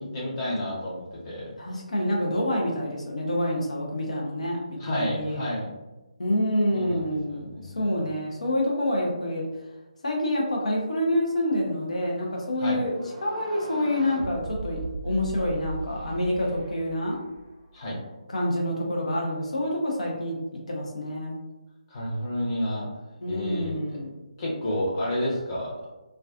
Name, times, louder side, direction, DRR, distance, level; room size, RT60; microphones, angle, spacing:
voice 1, 0.1-1.5 4.8-5.7 6.7-7.9 12.6-12.8 17.7-18.0 21.9-22.9 23.3-23.8 24.4-25.8, left 1 dB, 25° left, -6 dB, 0.8 m, -30 dB
voice 2, 1.6-5.4 6.2-9.5 10.0-12.9 13.2-17.2 18.3-20.4 20.7-21.4 23.2-24.1, left 1 dB, 70° left, -2 dB, 0.6 m, -27 dB
sound 1, 12.8-17.7, right 2 dB, 15° right, 0.7 m, -38 dB
2.3 x 2.2 x 2.4 m, 1.1 s
figure-of-eight pair, 145°, 4 cm